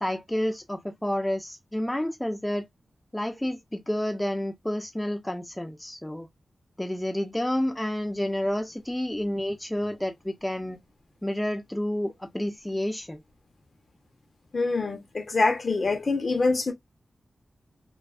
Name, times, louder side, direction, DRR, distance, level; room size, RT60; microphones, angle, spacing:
voice 1, 0.0-2.7 3.1-6.3 6.8-10.8 11.2-13.2, left 1 dB, 10° left, 0.5 m, -30 dB
voice 2, 14.5-16.7, left 3 dB, 50° left, 0.7 m, -25 dB
2.5 x 2.3 x 2.3 m
wide cardioid pair, 90°, 0 cm